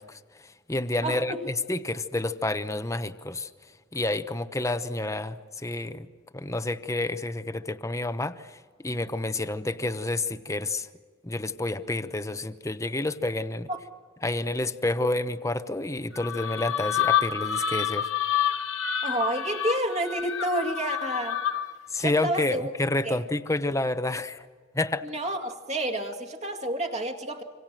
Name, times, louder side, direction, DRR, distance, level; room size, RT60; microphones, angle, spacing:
voice 1, 0.0-3.5 3.9-6.1 6.3-10.9 11.2-13.7 14.2-18.1 21.9-24.5 24.7-25.1, left 2 dB, 15° left, 11 dB, 0.8 m, -29 dB
voice 2, 1.0-1.4 13.7-13.8 19.0-21.4 22.0-22.7 23.0-23.2 25.0-27.4, right 1 dB, 35° right, 5 dB, 2.2 m, -30 dB
sound 1, 16.1-21.8, left 9 dB, 75° left, 1.3 m, -28 dB
26.5 x 25.5 x 7.5 m, 1.5 s
head